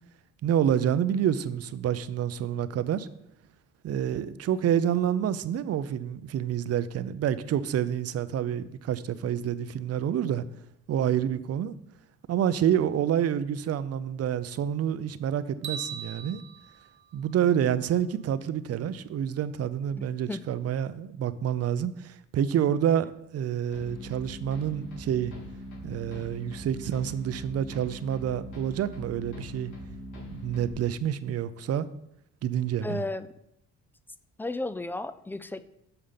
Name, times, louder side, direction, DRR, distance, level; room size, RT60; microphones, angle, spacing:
voice 1, 0.4-3.1 3.8-10.4 10.9-11.8 12.3-16.4 17.1-25.3 25.8-29.7 30.3-31.9 32.4-33.0, right 9 dB, 55° right, 14 dB, 0.5 m, -28 dB
sound 1, 15.6-17.9, right 8 dB, 40° right, 1.0 m, -40 dB
voice 2, 20.0-20.4 32.8-33.3 34.4-35.7, left 2 dB, 5° left, 13 dB, 0.4 m, -34 dB
sound 2, 23.7-30.7, equal, 90° left, 3.3 m, -41 dB
6.9 x 5.7 x 5.1 m, 0.80 s
cardioid pair, 90°, 30 cm